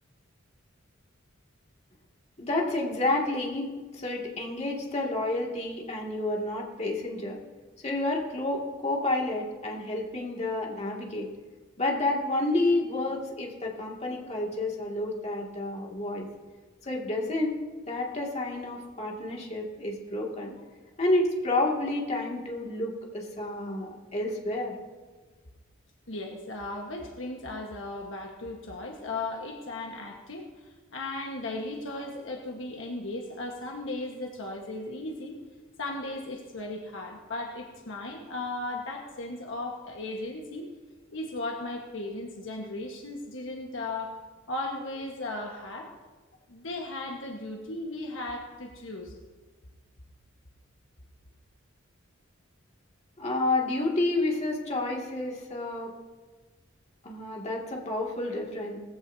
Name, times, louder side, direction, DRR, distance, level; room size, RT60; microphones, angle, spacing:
voice 1, 2.4-7.4 7.8-11.3 11.8-16.3 16.9-17.6 17.9-20.5 21.0-24.7 53.2-55.9 57.0-58.8, left 2 dB, 35° left, -2 dB, 2.3 m, -30 dB
voice 2, 26.1-35.4 35.8-40.7 41.1-44.2 44.5-45.9 46.5-49.2, left 2 dB, 65° left, 1 dB, 1.4 m, -36 dB
18.5 x 15.5 x 2.8 m, 1.3 s
head